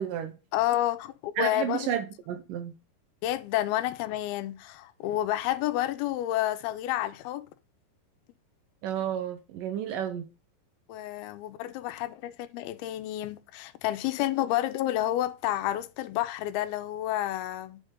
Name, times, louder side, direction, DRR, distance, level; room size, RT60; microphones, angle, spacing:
voice 1, 0.0-0.4 1.4-2.7 8.8-10.3, right 9 dB, 75° right, 2.2 m, -31 dB
voice 2, 0.5-1.9 3.2-7.4 10.9-17.8, left 13 dB, 85° left, 2.5 m, -30 dB
9.8 x 5.3 x 3.7 m
omnidirectional pair, 4.4 m